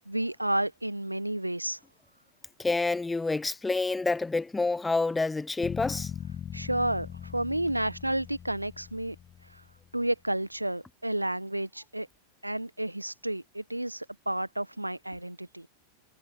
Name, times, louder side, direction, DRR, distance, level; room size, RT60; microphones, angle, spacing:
voice 1, 0.1-1.8 6.5-9.1 9.4-9.6 9.9-12.1 12.4-15.7, right 1 dB, 85° right, 1.1 m, -31 dB
voice 2, 2.6-6.1, left 3 dB, 10° left, 0.5 m, -28 dB
sound 1, 5.6-9.7, left 9 dB, 25° left, 4.9 m, -40 dB
figure-of-eight pair, 90°, 0 cm